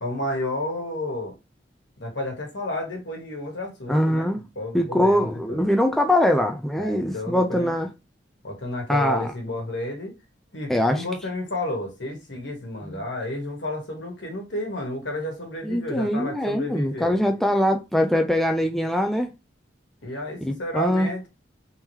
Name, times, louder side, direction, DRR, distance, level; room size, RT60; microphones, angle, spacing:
voice 1, 0.0-1.3 2.0-5.6 6.8-7.7 8.4-10.1 10.5-17.1 20.0-21.3, left 1 dB, 75° left, 1.4 m, -31 dB
voice 2, 3.9-4.4 4.7-7.9 8.9-9.3 10.7-11.0 15.6-19.3 20.4-21.1, left 1 dB, ahead, 0.3 m, -22 dB
3.5 x 3.0 x 3.0 m
head